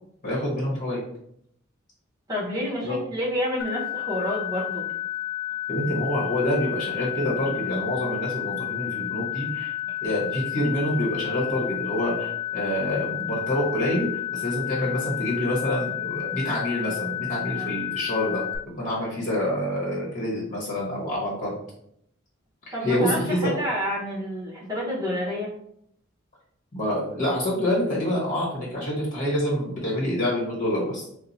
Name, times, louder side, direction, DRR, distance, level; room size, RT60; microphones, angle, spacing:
voice 1, 0.2-1.0 2.8-3.0 5.7-9.7 10.0-21.5 22.7-23.5 26.7-31.1, left 1 dB, 40° left, -5 dB, 1.2 m, -27 dB
voice 2, 2.3-4.9 17.5-17.7 22.7-25.5, equal, 20° right, -6 dB, 1.0 m, -29 dB
sound 1, 3.6-18.6, left 14 dB, 65° left, 0.3 m, -31 dB
2.8 x 2.1 x 3.9 m, 0.72 s
head